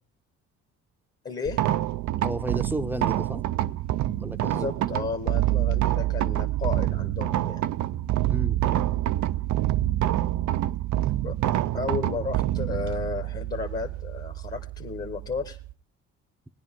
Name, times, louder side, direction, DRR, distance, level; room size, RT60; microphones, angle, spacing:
voice 1, 1.2-1.7 4.4-7.6 11.2-11.4 11.7-15.6, left 5 dB, 30° left, 1.2 m, -33 dB
sound 1, 1.5-15.7, right 14 dB, 70° right, 0.6 m, -27 dB
voice 2, 2.2-3.4 4.2-4.7 8.3-8.9, right 1 dB, 5° right, 0.7 m, -33 dB
18.5 x 10.0 x 3.6 m
cardioid pair, 90°, 30 cm